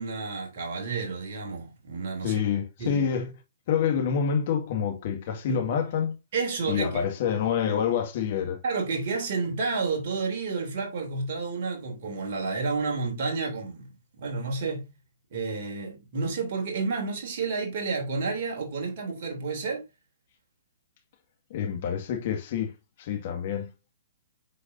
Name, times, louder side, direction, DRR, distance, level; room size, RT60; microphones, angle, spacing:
voice 1, 0.0-2.4 2.8-3.0 5.5-5.7 6.3-7.0 8.6-13.9 14.2-14.8 15.3-19.8, right 4 dB, 50° right, 3.2 m, -30 dB
voice 2, 2.2-3.3 3.7-6.2 6.7-8.6 21.5-22.7 23.0-23.7, left 7 dB, 50° left, 2.0 m, -27 dB
8.1 x 6.3 x 2.7 m
figure-of-eight pair, 120°, 0 cm